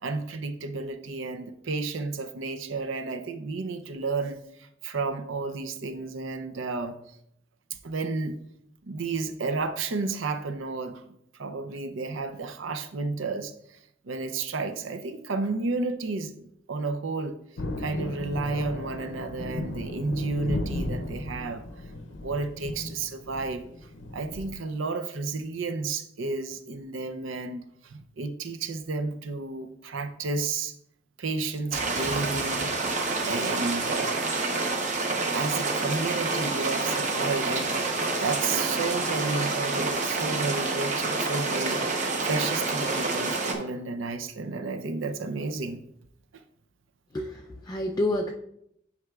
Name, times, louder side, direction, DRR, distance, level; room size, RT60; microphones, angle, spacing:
voice 1, 0.0-7.0 7.7-8.4 8.8-13.8 14.0-16.3 16.7-17.4 17.8-21.9 22.2-30.7 31.2-32.7 33.2-34.3 35.3-41.8 42.2-45.8, right 3 dB, 75° right, 9 dB, 0.6 m, -32 dB
Thunder, 17.6-24.5, left 2 dB, 70° left, 0.6 m, -35 dB
sound 1, 31.7-43.6, right 3 dB, 40° right, 0.8 m, -28 dB
voice 2, 47.1-48.3, left 1 dB, 20° left, 1 dB, 0.4 m, -28 dB
9.4 x 4.9 x 2.3 m, 0.75 s
head